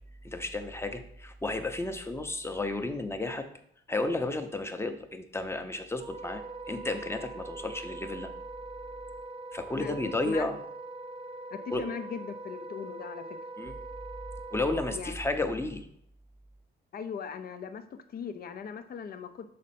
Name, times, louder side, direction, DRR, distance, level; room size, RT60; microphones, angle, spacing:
voice 1, 0.2-3.5 3.9-8.3 9.5-10.6 11.7-11.8 13.6-13.7 14.5-15.9, left 2 dB, 10° left, 7 dB, 0.7 m, -32 dB
Wind instrument woodwind instrument, 6.0-15.0, right 2 dB, 30° right, 0.5 m, -42 dB
voice 2, 9.8-10.5 11.5-13.4 14.9-15.2 16.9-19.5, left 6 dB, 50° left, 10 dB, 0.6 m, -39 dB
6.3 x 4.2 x 4.3 m, 0.70 s
cardioid pair, 90°, 20 cm